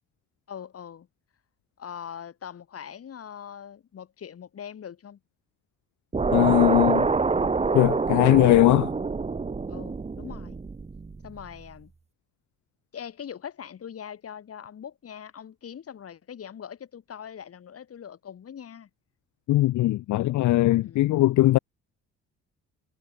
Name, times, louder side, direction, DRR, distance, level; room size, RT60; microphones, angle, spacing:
voice 1, 0.5-1.1 1.8-5.2 9.7-10.6 11.2-11.9 12.9-18.9 20.7-21.1, left 8 dB, 50° left, 2.3 m, -42 dB
sound 1, 6.1-11.4, right 4 dB, 20° right, 1.1 m, -26 dB
voice 2, 6.3-7.1 7.7-8.9 19.5-21.6, left 16 dB, 70° left, 0.7 m, -20 dB
cardioid pair, 90°, 30 cm